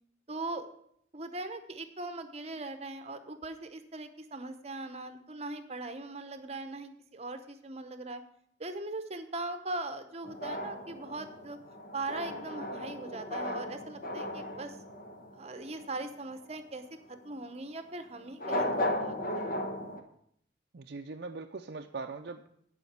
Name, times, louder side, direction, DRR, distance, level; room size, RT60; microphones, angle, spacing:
voice 1, 0.3-0.7 1.1-8.2 8.6-11.6 11.9-14.8 15.3-19.5, right 2 dB, 35° right, 9 dB, 0.8 m, -40 dB
sound 1, 10.2-16.0 18.3-20.0, left 1 dB, 45° left, 1.1 m, -36 dB
voice 2, 20.7-22.6, right 4 dB, 55° right, 3 dB, 0.5 m, -41 dB
10.0 x 5.1 x 8.1 m, 0.69 s
head